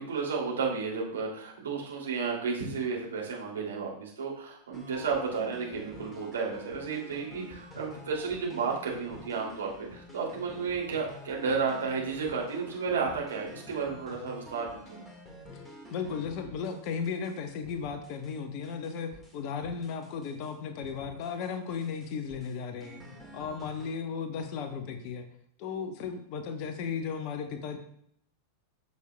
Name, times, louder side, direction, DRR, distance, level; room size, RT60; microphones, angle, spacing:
voice 1, 0.0-15.0, right 5 dB, 65° right, -2 dB, 2.5 m, -32 dB
sound 1, 4.7-17.4 17.6-18.4 18.6-20.5 20.8-21.5 21.8-23.9, equal, 10° left, 1.7 m, -49 dB
voice 2, 15.9-23.0 23.3-25.3 25.6-27.8, left 6 dB, 45° left, 7 dB, 1.0 m, -35 dB
13.5 x 6.5 x 2.2 m, 0.69 s
figure-of-eight pair, 90°, 0 cm